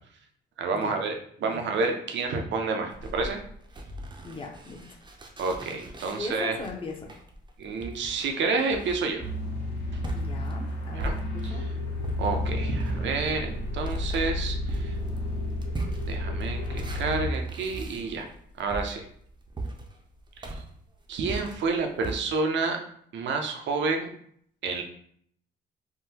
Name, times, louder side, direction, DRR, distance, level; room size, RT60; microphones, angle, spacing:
voice 1, 0.6-1.1 1.4-3.4 5.4-6.6 7.6-9.2 11.0-11.1 11.4-11.5 12.2-14.9 16.0-18.3 18.6-19.1 20.4-20.6 21.1-22.8 23.1-24.1 24.6-24.8, right 4 dB, 70° right, 4 dB, 0.6 m, -29 dB
voice 2, 1.4-1.7 4.2-5.0 6.0-7.1 10.1-11.6, left 3 dB, 25° left, 1 dB, 0.6 m, -39 dB
sound 1, 2.9-11.6 12.0-22.2, right 2 dB, 25° right, 0.5 m, -40 dB
sound 2, 9.2-17.3, left 1 dB, 60° left, 0.9 m, -31 dB
sound 3, 11.5-12.1 12.5-16.8, left 4 dB, 85° left, 0.4 m, -47 dB
3.6 x 2.1 x 2.8 m, 0.65 s
cardioid pair, 90°, 20 cm